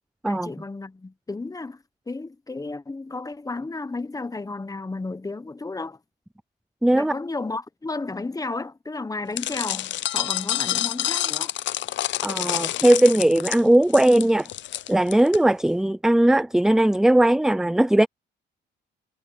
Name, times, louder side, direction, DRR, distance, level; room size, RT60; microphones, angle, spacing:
voice 1, 0.3-6.0 6.9-11.6, left 3 dB, 15° left, 1.2 m, -33 dB
voice 2, 6.8-7.1 12.2-14.5 14.9-18.1, right 1 dB, 5° right, 0.5 m, -18 dB
sound 1, 9.4-15.4, left 13 dB, 65° left, 0.6 m, -28 dB
cardioid pair, 90°, 20 cm